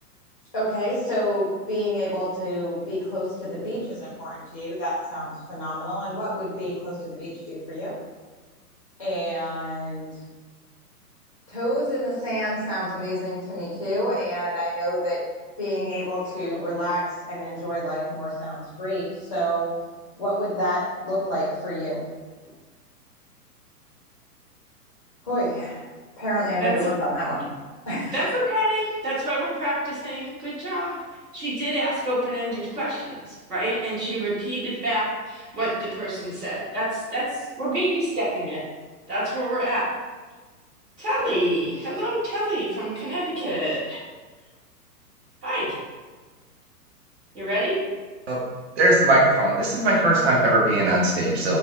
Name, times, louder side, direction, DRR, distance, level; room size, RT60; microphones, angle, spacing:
voice 1, 0.5-7.9 9.0-10.1 11.5-15.2 15.6-17.0 17.3-19.7 20.2-22.0 25.2-25.9 26.2-27.4 27.9-28.1, equal, 20° left, -11 dB, 0.5 m, -28 dB
voice 2, 28.1-31.0 31.3-37.2 37.6-38.6 39.1-39.8 41.0-44.0 45.4-45.8 47.3-47.7, right 1 dB, 65° right, -11 dB, 1.2 m, -27 dB
voice 3, 48.8-51.6, right 1 dB, 45° right, -4 dB, 0.5 m, -19 dB
2.6 x 2.0 x 2.4 m, 1.3 s
figure-of-eight pair, 110°, 47 cm